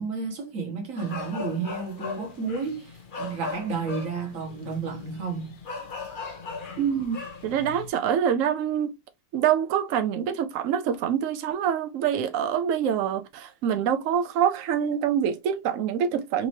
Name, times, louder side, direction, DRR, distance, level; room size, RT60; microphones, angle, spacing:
voice 1, 0.0-5.6, right 5 dB, 50° right, 1.6 m, -32 dB
sound 1, 1.0-7.9, left 4 dB, 50° left, 0.6 m, -38 dB
voice 2, 6.8-8.9 9.3-16.5, right 8 dB, 85° right, 0.7 m, -25 dB
4.1 x 2.8 x 2.9 m
omnidirectional pair, 2.0 m